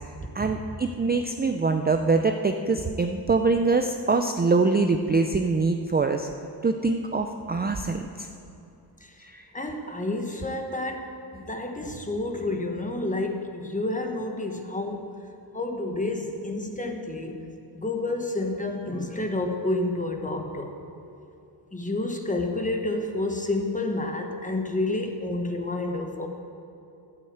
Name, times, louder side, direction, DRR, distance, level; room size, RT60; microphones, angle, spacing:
voice 1, 0.4-6.3 6.6-8.3 9.2-9.5, right 3 dB, 20° right, 5 dB, 0.5 m, -24 dB
voice 2, 9.5-15.2 15.5-17.5 17.7-20.8 21.7-26.3, left 2 dB, 15° left, 4 dB, 1.2 m, -29 dB
12.5 x 8.8 x 7.9 m, 2.8 s
wide cardioid pair, 140°, 44 cm